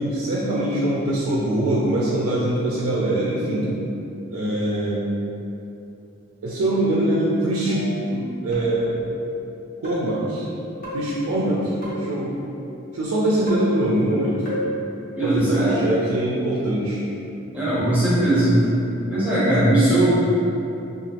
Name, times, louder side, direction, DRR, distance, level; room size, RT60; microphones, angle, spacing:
voice 1, 0.0-3.7 4.3-5.0 6.4-9.0 9.8-10.5 10.9-12.4 12.9-14.4 15.2-17.0, right 1 dB, 85° right, -6 dB, 0.4 m, -23 dB
sound 1, 7.7-8.1 8.5-9.1 9.8-10.3 10.8-12.3 13.5-14.2 14.4-14.8, right 1 dB, 40° left, 0.7 m, -33 dB
voice 2, 15.2-15.8 17.5-18.6 19.1-20.1, right 1 dB, 5° right, -12 dB, 0.6 m, -19 dB
2.9 x 2.3 x 2.8 m, 2.8 s
head